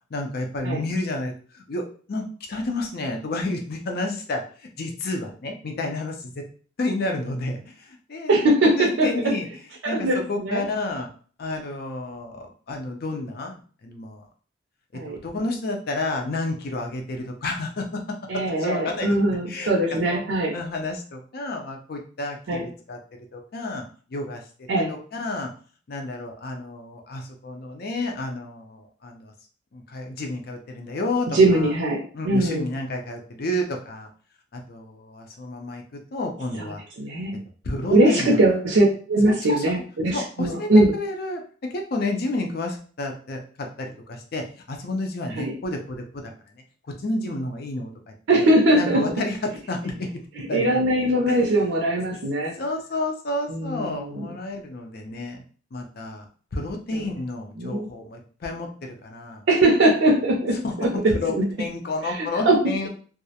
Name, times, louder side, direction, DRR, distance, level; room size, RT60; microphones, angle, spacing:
voice 1, 0.1-6.4 6.8-8.3 8.8-9.6 9.9-11.1 11.4-14.3 14.9-18.0 18.3-19.7 20.1-20.2 20.5-23.0 23.3-23.8 24.1-25.5 25.9-29.3 29.7-31.7 32.1-34.1 34.5-36.8 37.6-38.4 39.3-39.8 40.1-41.4 41.7-46.6 47.0-48.5 48.7-50.8 51.3-51.4 52.6-55.4 55.7-56.2 56.5-59.4 60.6-60.9 61.1-62.9, left 2 dB, 55° left, 3 dB, 0.5 m, -31 dB
voice 2, 8.3-9.1 9.8-10.6 14.9-15.2 18.3-20.5 22.5-22.6 24.7-24.9 31.3-32.7 37.0-37.4 37.9-40.9 45.4-45.5 48.3-49.0 50.4-52.5 53.5-54.3 57.6-57.9 59.5-60.9 61.3-61.4 62.5-62.6, right 1 dB, 75° right, -2 dB, 0.5 m, -21 dB
2.3 x 2.0 x 2.7 m, 0.42 s
head